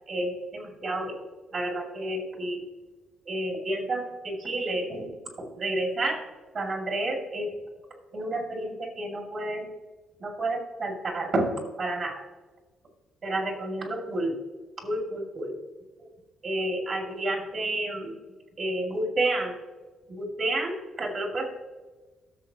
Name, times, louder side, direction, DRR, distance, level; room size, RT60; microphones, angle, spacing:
voice 1, 0.1-1.3 1.5-2.6 3.3-6.2 6.5-7.5 8.1-9.7 10.2-12.2 13.2-14.4 14.8-15.6 16.0-16.1 16.4-18.2 18.6-19.6 20.1-21.5, right 1 dB, 50° right, 1 dB, 2.4 m, -30 dB
14.0 x 6.5 x 2.9 m, 1.2 s
cardioid pair, 90°, 0 cm